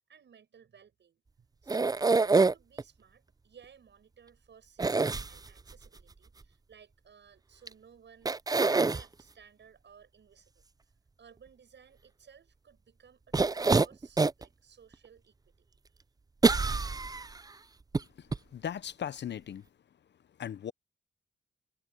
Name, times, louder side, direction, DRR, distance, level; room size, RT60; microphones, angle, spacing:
voice 1, 0.1-10.7 11.2-16.0, right 7 dB, 75° right, 7.4 m, -58 dB
sound 1, 1.7-2.8 4.8-5.7 7.7-7.8 8.3-9.0 13.3-14.4 14.9-15.0 16.4-17.4 17.9-18.0 18.3-18.4, right 3 dB, 20° right, 0.5 m, -25 dB
voice 2, 18.0-19.7 20.3-20.7, left 9 dB, 70° left, 0.7 m, -39 dB
cardioid pair, 55°, 19 cm